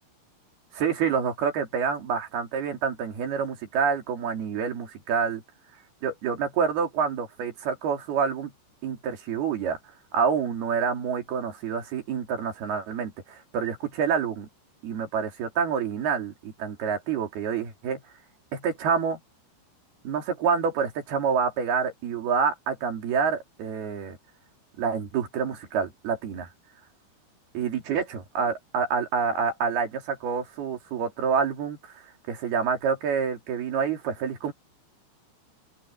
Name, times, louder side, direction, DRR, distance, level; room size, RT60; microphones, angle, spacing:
voice 1, 0.7-5.4 6.0-8.5 8.8-9.8 10.1-14.5 14.8-18.0 18.5-19.2 20.0-24.2 24.8-26.5 27.5-31.9 32.3-34.5, right 6 dB, 55° right, 4.8 m, -27 dB
open air
omnidirectional pair, 5.4 m